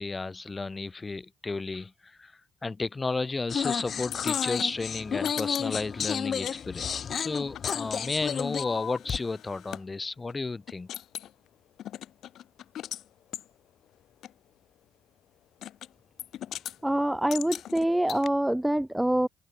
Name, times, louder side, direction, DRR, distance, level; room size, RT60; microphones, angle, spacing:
voice 1, 0.0-2.3 2.6-10.9, left 3 dB, 25° left, 2.9 m, -33 dB
sound 1, 3.5-9.2, left 7 dB, 55° left, 1.0 m, -31 dB
sound 2, 4.1-6.6 6.8-9.8 10.3-10.4 10.7-11.3 11.8-13.0 13.3-13.5 14.2-14.3 15.6-15.9 16.2-16.8 17.3-18.3, left 11 dB, 75° left, 7.4 m, -40 dB
voice 2, 16.8-19.3, right 1 dB, 5° right, 0.7 m, -25 dB
cardioid pair, 90°, 0 cm